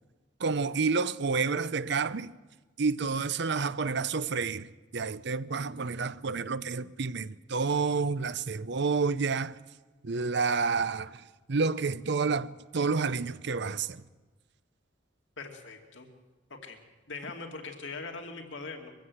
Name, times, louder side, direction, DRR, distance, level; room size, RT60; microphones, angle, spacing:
voice 1, 0.4-2.3 2.8-4.7 4.9-9.6 10.0-11.2 11.5-14.0, right 4 dB, 65° right, 0.7 m, -29 dB
voice 2, 15.4-16.1 16.5-16.8 17.1-18.9, left 3 dB, 80° left, 2.5 m, -41 dB
23.0 x 15.5 x 8.0 m
head